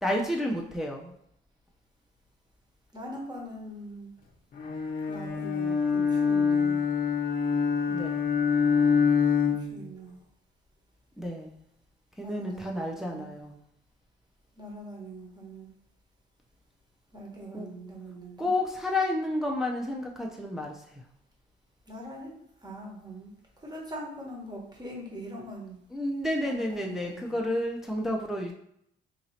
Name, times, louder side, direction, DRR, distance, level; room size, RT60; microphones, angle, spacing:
voice 1, 0.0-1.1 7.9-8.3 11.2-11.6 12.2-13.6 17.5-17.7 18.4-20.8 25.9-28.5, left 1 dB, ahead, -1 dB, 0.4 m, -31 dB
voice 2, 2.9-4.1 5.1-6.8 9.4-10.2 12.2-13.4 14.6-15.7 17.1-18.5 21.9-22.3 22.6-23.3 23.6-25.8 26.4-27.4, right 1 dB, 20° right, -2 dB, 1.2 m, -42 dB
Bowed string instrument, 4.6-9.8, left 6 dB, 45° left, 0.6 m, -25 dB
2.9 x 2.7 x 4.1 m, 0.74 s
cardioid pair, 90°, 20 cm